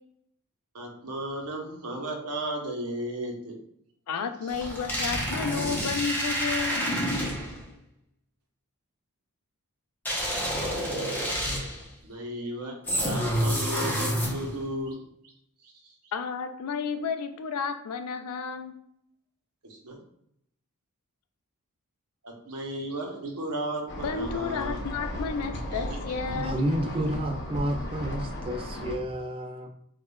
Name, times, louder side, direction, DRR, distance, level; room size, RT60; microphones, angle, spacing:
voice 1, 0.7-3.6 4.5-4.6 12.0-15.0 15.6-15.7 19.6-20.0 22.2-24.8 25.7-26.0, right 1 dB, 80° right, 1 dB, 0.8 m, -35 dB
voice 2, 4.1-6.8 16.1-18.8 24.0-26.6, left 5 dB, 80° left, 8 dB, 0.4 m, -32 dB
sound 1, 4.5-7.6 10.1-11.9 12.9-14.6, equal, 10° left, 0.7 m, -28 dB
sound 2, 23.9-28.9, left 1 dB, 50° left, 0.8 m, -35 dB
voice 3, 26.3-29.7, right 1 dB, 25° right, 5 dB, 0.3 m, -30 dB
4.7 x 2.3 x 2.2 m, 0.74 s
head